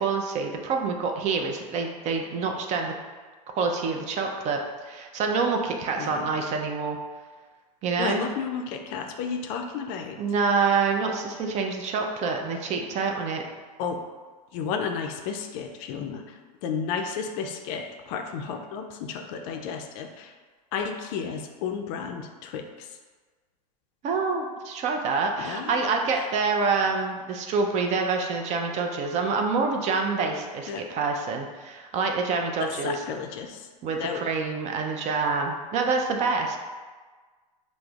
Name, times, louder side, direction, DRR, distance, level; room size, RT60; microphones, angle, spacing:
voice 1, 0.0-2.9 3.6-4.6 4.9-7.0 7.8-8.2 10.2-13.4 24.0-32.9 33.8-36.6, right 4 dB, 35° right, 3 dB, 0.4 m, -26 dB
voice 2, 6.0-6.4 8.0-10.2 13.8-14.0 14.5-20.4 20.7-23.0 25.4-26.3 30.7-30.8 32.6-33.7 34.0-34.2, left 6 dB, 50° left, 4 dB, 0.4 m, -33 dB
4.9 x 2.0 x 2.3 m, 1.4 s
hypercardioid pair, 115°, 21 cm